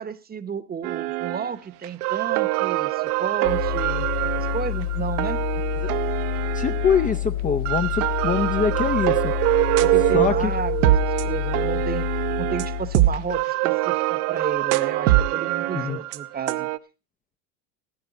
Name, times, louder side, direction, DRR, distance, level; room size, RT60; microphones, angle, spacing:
voice 1, 0.0-4.1 4.3-5.4 9.8-16.7, right 7 dB, 20° right, 14 dB, 1.0 m, -32 dB
sound 1, 0.8-1.5 1.8-7.2 7.6-16.8, right 17 dB, 70° right, 1.0 m, -24 dB
sound 2, 3.4-13.4, left 12 dB, 80° left, 0.7 m, -28 dB
voice 2, 6.5-9.3 10.1-10.5 15.7-16.0, left 6 dB, 15° left, 6 dB, 0.6 m, -24 dB
16.0 x 9.5 x 4.0 m, 0.31 s
supercardioid pair, 110°, 47 cm